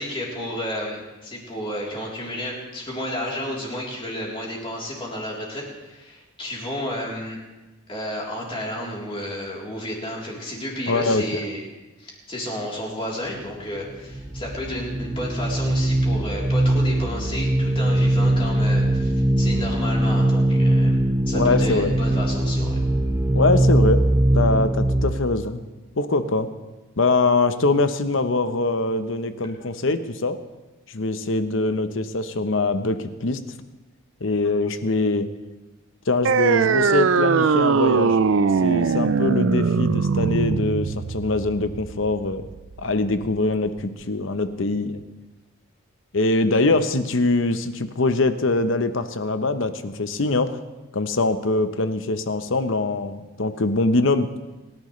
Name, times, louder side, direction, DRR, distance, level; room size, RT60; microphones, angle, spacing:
voice 1, 0.0-7.4 7.9-11.6 12.0-20.9 21.3-22.8, equal, 25° left, -3 dB, 3.5 m, -31 dB
voice 2, 10.9-11.2 21.3-22.0 23.3-24.0 24.3-25.6 26.0-26.5 27.0-30.4 30.9-33.4 34.2-35.3 36.1-38.2 38.6-42.5 42.8-45.0 46.1-50.6 50.9-54.3, left 2 dB, 65° left, 10 dB, 0.9 m, -23 dB
sound 1, 13.9-25.1, right 1 dB, 10° right, 1.0 m, -21 dB
sound 2, 36.2-43.3, right 5 dB, 65° right, 0.5 m, -21 dB
29.5 x 10.5 x 3.2 m, 1.1 s
head